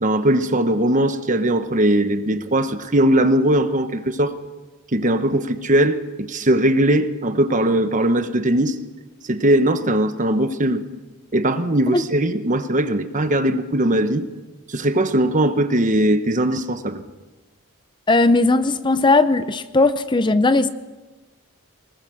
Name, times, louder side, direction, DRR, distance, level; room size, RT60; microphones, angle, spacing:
voice 1, 0.0-4.3 4.9-8.7 9.3-10.8 11.3-14.2 14.7-17.0, right 1 dB, 35° right, 1.1 m, -19 dB
voice 2, 18.1-20.7, left 2 dB, 20° left, 0.6 m, -17 dB
24.0 x 21.0 x 6.4 m
head